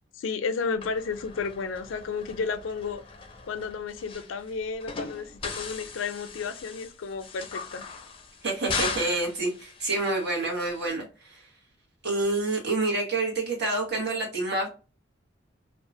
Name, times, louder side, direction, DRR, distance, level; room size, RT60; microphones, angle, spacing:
voice 1, 0.2-3.0 3.4-7.8, left 5 dB, 90° left, 0.4 m, -32 dB
sound 1, 0.8-10.9, left 5 dB, 30° left, 0.4 m, -39 dB
voice 2, 8.4-11.5 12.0-14.7, right 2 dB, 60° right, 1.4 m, -28 dB
2.8 x 2.3 x 2.6 m
head